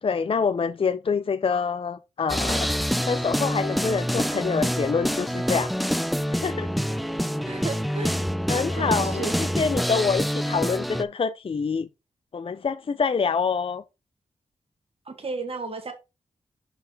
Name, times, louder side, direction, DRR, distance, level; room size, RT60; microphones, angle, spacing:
voice 1, 0.0-2.7 3.1-5.7 6.3-6.7 8.5-11.9 12.3-13.8, left 5 dB, 45° left, 0.5 m, -26 dB
sound 1, 2.3-11.0, equal, ahead, 0.6 m, -26 dB
voice 2, 7.4-8.2 8.8-9.3 15.0-15.9, right 4 dB, 50° right, 1.8 m, -33 dB
5.9 x 5.7 x 3.9 m
cardioid pair, 60°, 13 cm